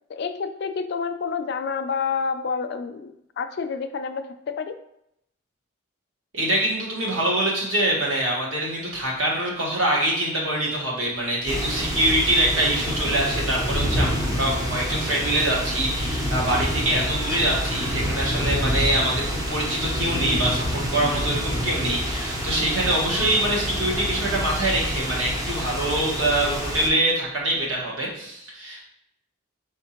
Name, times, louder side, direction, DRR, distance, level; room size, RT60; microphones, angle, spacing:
voice 1, 0.1-4.8, left 5 dB, 50° left, 8 dB, 0.3 m, -29 dB
voice 2, 6.3-28.9, right 1 dB, 65° right, -3 dB, 1.3 m, -24 dB
sound 1, 11.5-26.9, equal, 15° right, 0.5 m, -27 dB
4.9 x 3.5 x 2.9 m, 0.78 s
head